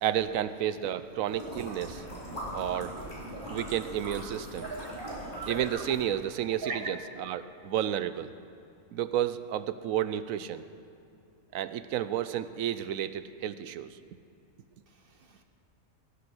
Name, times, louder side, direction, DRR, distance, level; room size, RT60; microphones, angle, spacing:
voice 1, 0.0-2.0 2.5-3.0 3.5-4.7 5.5-8.3 8.9-10.6 11.5-14.0, right 10 dB, 75° right, 13 dB, 1.0 m, -31 dB
sound 1, 1.3-6.1, equal, 35° left, 3.8 m, -40 dB
voice 2, 4.6-5.8 6.6-6.8, right 4 dB, 45° right, 6 dB, 0.9 m, -39 dB
19.5 x 8.3 x 6.1 m, 2.7 s
omnidirectional pair, 1.5 m